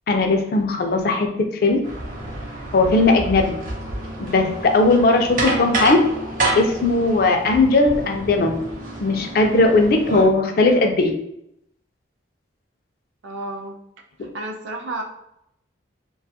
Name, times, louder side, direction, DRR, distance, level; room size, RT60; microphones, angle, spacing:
voice 1, 0.1-1.8 2.7-3.6 4.2-6.0 6.6-8.6 9.0-11.2, left 2 dB, 50° left, 4 dB, 0.4 m, -18 dB
sound 1, 1.8-10.3, right 2 dB, 45° right, 0.7 m, -29 dB
voice 2, 5.6-5.9 13.2-13.8 14.2-15.0, right 2 dB, 85° right, 2 dB, 0.5 m, -32 dB
2.4 x 2.2 x 2.7 m, 0.78 s
head